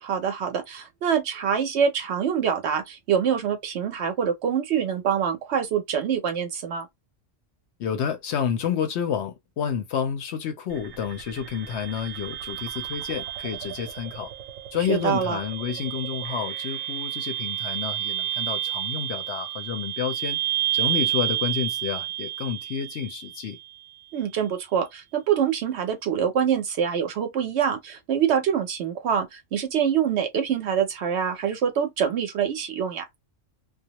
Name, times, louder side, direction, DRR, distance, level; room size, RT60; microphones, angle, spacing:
voice 1, 0.0-6.9 14.9-15.4 24.1-33.1, right 8 dB, 65° right, 0.8 m, -25 dB
voice 2, 7.8-14.3 14.7-20.4 20.7-23.6, left 8 dB, 65° left, 0.8 m, -30 dB
sound 1, 10.7-23.7, right 13 dB, 90° right, 1.0 m, -31 dB
2.3 x 2.0 x 2.8 m
omnidirectional pair, 1.3 m